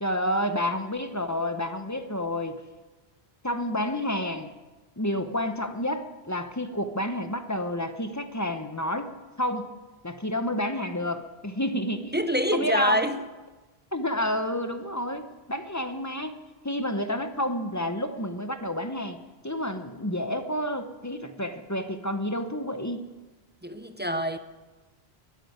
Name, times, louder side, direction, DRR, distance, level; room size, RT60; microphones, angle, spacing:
voice 1, 0.0-2.6 3.4-4.5 5.0-9.1 9.4-9.7 10.0-12.1 12.5-13.1 13.9-19.2 19.4-23.1, left 1 dB, 20° left, 0.7 m, -30 dB
voice 2, 12.1-13.2 23.6-24.4, equal, 15° right, 0.5 m, -26 dB
12.5 x 9.6 x 9.3 m
omnidirectional pair, 1.1 m